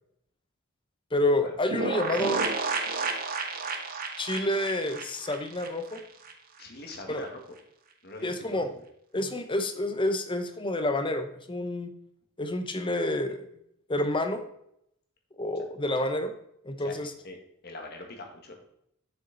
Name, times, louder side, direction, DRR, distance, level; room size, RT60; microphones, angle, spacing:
voice 1, 1.1-2.5 4.2-6.0 7.1-7.2 8.2-8.7 9.1-11.9 12.4-13.5 13.9-14.4 15.4-16.3 16.6-17.1, left 1 dB, 25° left, 8 dB, 0.9 m, -28 dB
sound 1, 1.7-6.3 6.6-6.7 6.9-7.0, right 4 dB, 45° right, 1.0 m, -32 dB
voice 2, 6.6-7.4 8.0-8.8 12.8-13.0 15.5-15.6 16.8-17.4 17.6-18.6, left 2 dB, 50° left, 3 dB, 1.7 m, -43 dB
7.3 x 7.0 x 4.0 m, 0.74 s
head